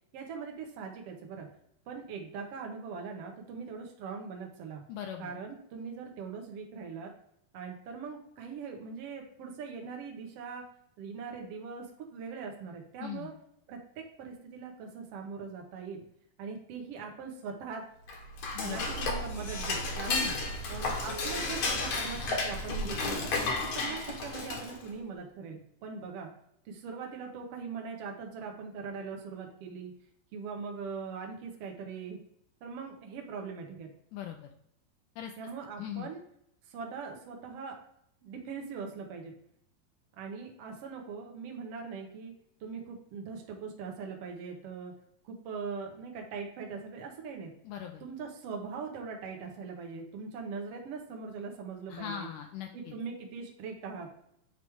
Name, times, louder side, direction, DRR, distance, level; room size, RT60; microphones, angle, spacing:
voice 1, 0.1-1.5 1.9-4.8 5.2-7.1 7.5-10.6 11.0-13.3 13.7-16.0 16.4-17.8 18.6-20.3 20.7-23.3 23.6-26.3 26.6-29.9 30.3-32.2 32.6-33.9 35.4-36.2 36.7-37.8 38.2-39.4 40.2-42.3 42.6-44.9 45.2-47.5 48.0-52.3 52.7-54.1, right 5 dB, 85° right, 1 dB, 1.3 m, -41 dB
voice 2, 4.9-5.3 13.0-13.3 18.5-18.8 20.1-20.4 34.1-34.4 35.2-35.3 35.8-36.1 47.7-48.0 51.9-52.9, left 8 dB, 85° left, 3 dB, 1.8 m, -39 dB
Dishes pots and pans / Cutlery silverware, 18.0-24.9, left 2 dB, 65° left, 1.7 m, -33 dB
9.1 x 3.1 x 3.4 m, 0.73 s
omnidirectional pair, 4.2 m